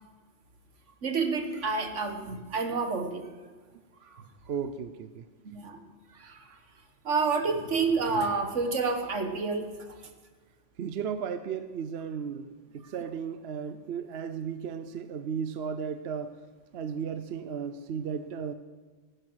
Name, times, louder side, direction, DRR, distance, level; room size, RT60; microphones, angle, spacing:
voice 1, 1.0-3.2 4.1-4.2 5.5-5.8 6.2-6.4 7.1-9.7, right 4 dB, 80° right, 6 dB, 1.8 m, -29 dB
voice 2, 4.4-5.2 10.8-16.4 16.7-18.5, right 7 dB, 65° right, 10 dB, 0.9 m, -35 dB
15.5 x 11.5 x 6.2 m, 1.4 s
omnidirectional pair, 1.2 m